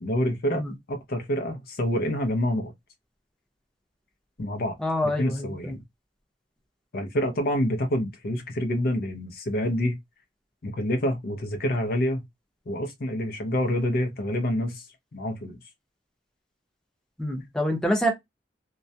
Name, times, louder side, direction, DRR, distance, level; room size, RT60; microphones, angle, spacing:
voice 1, 0.0-2.7 4.4-4.8 5.2-5.8 6.9-10.0 10.6-12.2 12.7-14.8 15.1-15.6, equal, 55° left, 0.5 m, -27 dB
voice 2, 4.8-5.7 17.2-18.1, equal, 5° left, 0.7 m, -26 dB
2.3 x 2.1 x 2.6 m
head